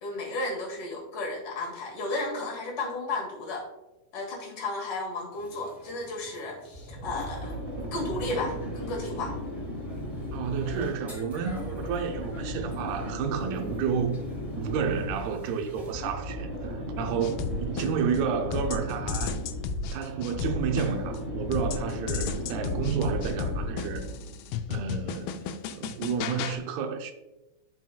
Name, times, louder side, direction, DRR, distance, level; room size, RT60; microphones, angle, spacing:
voice 1, 0.0-3.7 4.1-7.6 7.9-9.4, left 2 dB, 50° left, 1.7 m, -33 dB
sound 1, 5.3-15.9, left 2 dB, ahead, 0.4 m, -48 dB
sound 2, 6.7-24.3, equal, 30° right, 1.6 m, -36 dB
voice 2, 10.3-14.2 14.6-19.4 19.9-24.1 24.7-25.4 25.7-27.1, right 6 dB, 80° right, 2.6 m, -31 dB
sound 3, 17.2-18.2 18.5-21.2 21.5-26.6, left 5 dB, 80° left, 2.2 m, -33 dB
12.5 x 4.6 x 2.2 m
omnidirectional pair, 4.6 m